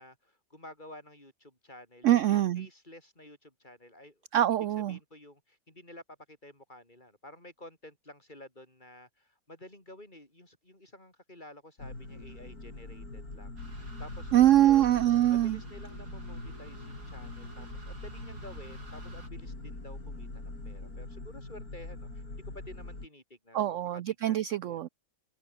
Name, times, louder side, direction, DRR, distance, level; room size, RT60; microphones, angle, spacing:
voice 1, 0.0-4.2 4.9-14.8 15.3-24.8, left 1 dB, 30° left, 6.1 m, -51 dB
voice 2, 2.0-2.7 4.3-5.0 14.3-15.6 23.5-24.9, right 12 dB, 65° right, 0.8 m, -24 dB
sound 1, 11.8-23.1, left 2 dB, 65° left, 6.3 m, -43 dB
sound 2, 13.6-19.3, right 2 dB, 90° right, 6.4 m, -48 dB
omnidirectional pair, 1.7 m